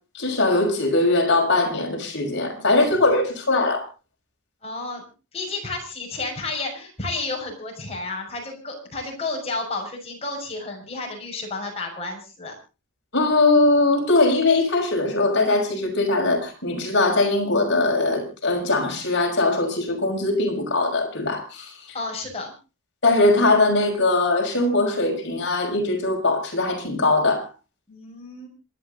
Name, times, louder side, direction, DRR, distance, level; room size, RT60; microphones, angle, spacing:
voice 1, 0.1-3.8 13.1-21.7 23.0-27.4, left 2 dB, 55° left, 1 dB, 6.0 m, -21 dB
voice 2, 2.5-3.1 4.6-5.0 5.3-12.5 21.9-22.5 27.9-28.5, left 3 dB, 30° left, 1 dB, 6.5 m, -32 dB
27.0 x 10.5 x 4.0 m, 0.33 s
head